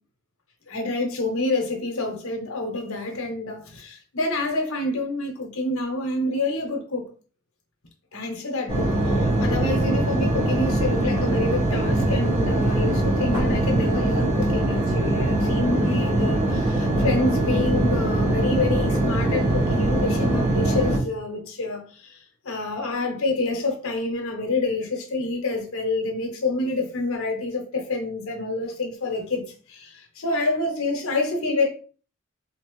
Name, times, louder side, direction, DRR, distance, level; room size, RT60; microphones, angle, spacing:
voice 1, 0.7-7.1 8.1-21.8 22.4-29.4 29.7-31.7, left 2 dB, 70° left, 0.9 m, -27 dB
sound 1, 8.7-21.0, right 1 dB, 15° right, 1.5 m, -22 dB
3.4 x 2.7 x 3.1 m
head